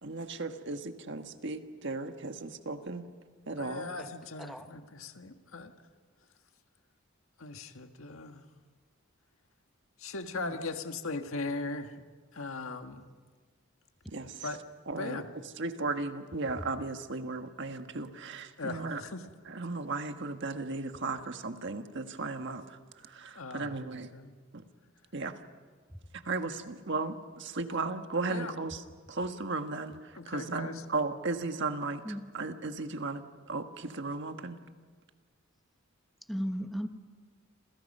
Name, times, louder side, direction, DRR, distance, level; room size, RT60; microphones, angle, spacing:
voice 1, 0.0-3.0 3.4-3.9 14.1-14.5 14.9-19.0 19.5-24.1 24.5-24.6 25.1-25.4 26.1-32.0 32.3-34.6, right 3 dB, 60° right, 1.5 m, -36 dB
voice 2, 3.6-5.7 7.4-8.4 10.0-12.0 12.3-13.1 14.4-14.6 15.0-15.3 18.6-19.2 23.3-23.7 24.1-24.3 28.3-28.5 30.1-30.8, left 3 dB, 90° left, 1.7 m, -39 dB
voice 3, 10.3-10.7 25.9-26.0 32.0-32.4 36.3-36.9, equal, ahead, 1.1 m, -37 dB
29.0 x 27.5 x 5.5 m
head